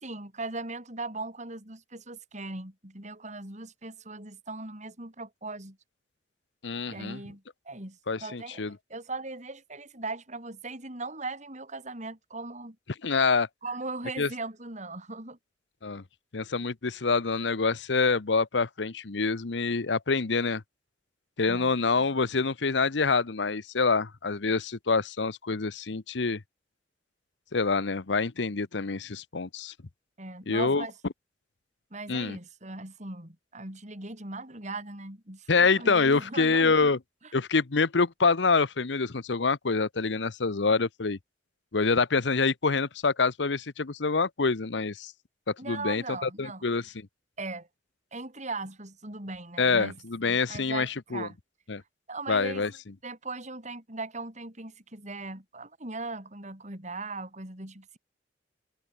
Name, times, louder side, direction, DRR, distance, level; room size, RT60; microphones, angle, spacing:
voice 1, 0.0-5.8 6.9-8.6 8.9-12.8 13.6-15.4 21.5-21.7 30.2-30.9 31.9-36.9 45.6-46.7 47.4-47.7 48.1-50.0 50.5-51.4 52.1-52.6 53.0-58.0, right 3 dB, 40° right, 6.8 m, -39 dB
voice 2, 6.6-7.2 8.1-8.8 13.0-13.5 14.2-14.3 15.8-16.0 16.3-20.6 21.4-26.4 27.5-29.7 30.5-30.8 32.1-32.4 35.5-37.0 37.3-41.2 41.7-45.1 45.5-47.1 49.6-51.3 51.7-51.8 52.3-52.7, left 4 dB, 80° left, 0.9 m, -26 dB
head